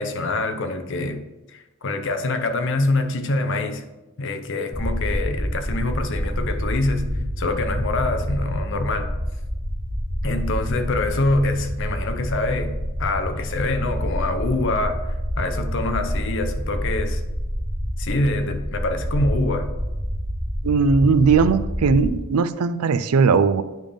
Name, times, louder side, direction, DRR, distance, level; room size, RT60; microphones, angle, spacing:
voice 1, 0.0-3.9 4.2-9.1 10.2-17.2 18.0-19.7, left 2 dB, 55° left, 7 dB, 0.7 m, -25 dB
sound 1, 4.7-22.1, equal, ahead, 1.3 m, -27 dB
voice 2, 20.6-23.6, right 5 dB, 90° right, 13 dB, 0.4 m, -18 dB
9.0 x 3.6 x 5.1 m, 1.0 s
head